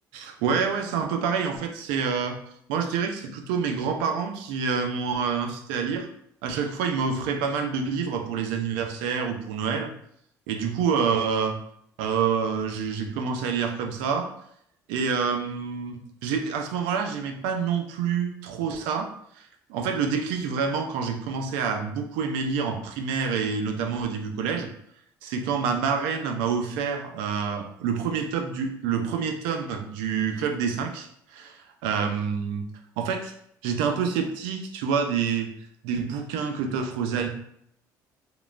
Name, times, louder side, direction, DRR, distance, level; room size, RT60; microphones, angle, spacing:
voice 1, 0.1-2.4 2.7-6.1 6.4-9.9 10.5-11.6 12.0-14.3 14.9-19.1 19.4-24.7 25.2-32.7 33.0-33.3 33.6-35.5 35.8-37.3, right 6 dB, 90° right, 5 dB, 0.4 m, -27 dB
2.9 x 2.2 x 2.4 m, 0.70 s
supercardioid pair, 80°, 8 cm